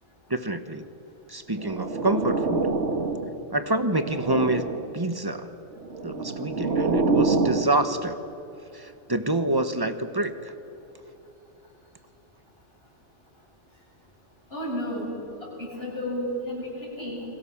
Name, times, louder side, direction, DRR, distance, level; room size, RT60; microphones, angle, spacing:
voice 1, 0.3-0.9 1.3-2.7 3.5-5.5 6.0-8.2 8.7-10.5, right 2 dB, 20° right, 10 dB, 1.2 m, -27 dB
sound 1, 1.6-3.4 3.8-4.9 5.8-7.7, right 3 dB, 70° right, 2.0 m, -26 dB
voice 2, 14.5-15.1 15.4-17.3, equal, 55° left, -5 dB, 8.4 m, -32 dB
29.5 x 22.0 x 7.3 m, 2.8 s
omnidirectional pair, 1.2 m